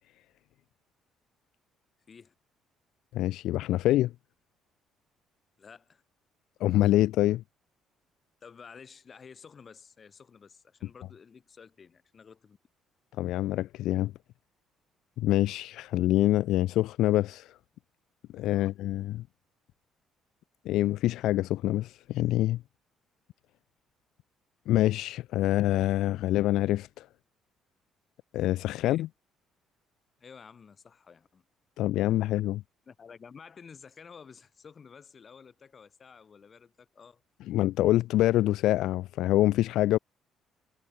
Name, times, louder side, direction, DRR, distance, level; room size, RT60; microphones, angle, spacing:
voice 1, 3.1-4.1 6.6-7.4 13.2-14.1 15.2-17.6 18.3-19.2 20.6-22.6 24.7-27.1 28.3-29.1 31.8-32.6 37.5-40.0, left 15 dB, 75° left, 0.9 m, -26 dB
voice 2, 5.6-6.0 8.4-12.6 18.5-18.7 28.8-29.1 30.2-31.4 32.9-37.2, left 6 dB, 25° left, 7.8 m, -51 dB
cardioid pair, 170°, 0 cm